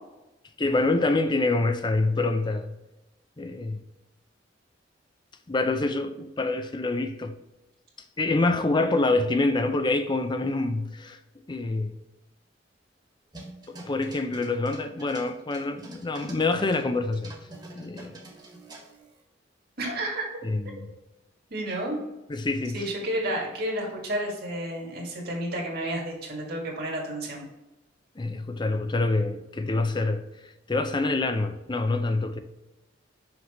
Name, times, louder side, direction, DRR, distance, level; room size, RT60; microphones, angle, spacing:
voice 1, 0.6-2.7 3.4-3.8 5.5-7.3 8.2-11.2 11.5-12.0 13.7-17.3 17.7-18.2 20.4-20.9 22.3-22.9 28.2-30.3 30.7-32.4, left 2 dB, 25° left, 0.5 m, -26 dB
sound 1, 13.3-16.9 17.1-19.2, right 2 dB, 25° right, 1.5 m, -46 dB
voice 2, 19.8-20.3 20.7-20.8 21.5-22.0 22.7-27.5, right 1 dB, 55° right, 2.0 m, -31 dB
5.9 x 5.8 x 3.1 m
head